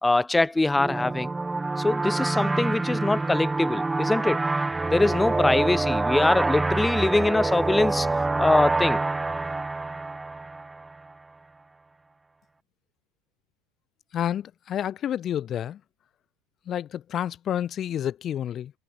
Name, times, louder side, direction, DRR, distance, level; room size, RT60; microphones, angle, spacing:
voice 1, 0.0-1.3 1.8-4.4 4.9-8.1 8.4-9.0, left 2 dB, 5° left, 2.2 m, -23 dB
sound 1, 0.7-11.1, right 3 dB, 10° right, 2.3 m, -26 dB
voice 2, 14.1-15.8 16.6-18.7, left 10 dB, 30° left, 5.1 m, -29 dB
supercardioid pair, 150°, 0 cm